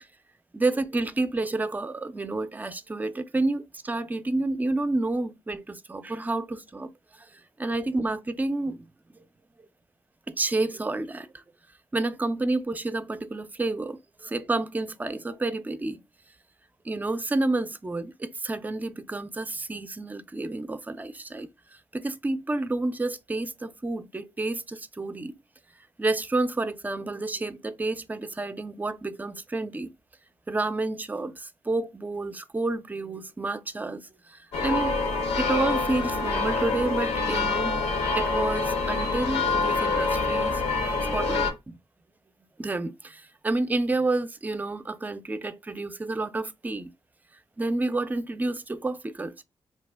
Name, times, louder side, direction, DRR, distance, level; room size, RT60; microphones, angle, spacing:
voice 1, 0.5-8.8 10.3-11.4 11.9-16.0 16.8-21.5 21.9-25.3 26.0-29.9 30.5-34.9 35.4-37.8 38.1-40.6 41.1-41.8 42.6-46.9 47.6-49.4, right 2 dB, 15° right, 0.3 m, -30 dB
sound 1, 34.5-41.5, left 3 dB, 80° left, 0.6 m, -26 dB
2.7 x 2.1 x 3.3 m
cardioid pair, 60°, 10 cm